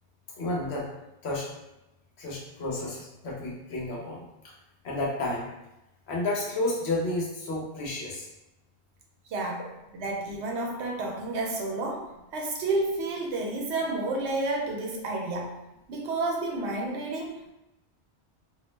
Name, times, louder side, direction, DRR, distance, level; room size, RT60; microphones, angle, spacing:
voice 1, 0.3-0.9 1.2-1.5 2.2-4.5 4.8-5.5 6.1-8.3, left 2 dB, 70° left, -3 dB, 1.0 m, -31 dB
voice 2, 9.3-9.6 9.9-15.6 15.9-17.5, right 2 dB, 85° right, 0 dB, 0.9 m, -30 dB
2.5 x 2.0 x 3.1 m, 0.92 s
omnidirectional pair, 1.1 m